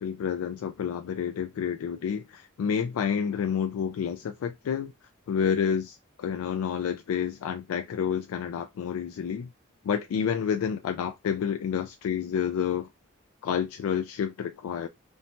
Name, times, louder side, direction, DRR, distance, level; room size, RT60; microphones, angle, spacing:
voice 1, 0.0-4.9 5.3-9.5 9.8-12.9 13.4-14.9, left 7 dB, 90° left, 0.3 m, -29 dB
2.6 x 2.1 x 2.8 m
head